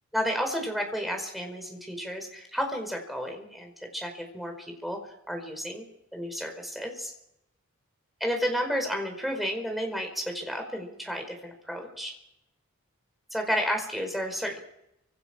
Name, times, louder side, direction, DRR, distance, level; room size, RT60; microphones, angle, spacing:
voice 1, 0.1-5.0 5.3-5.8 6.1-7.1 8.2-12.1 13.3-14.6, equal, ahead, 3 dB, 4.8 m, -32 dB
29.0 x 26.0 x 6.2 m, 0.84 s
head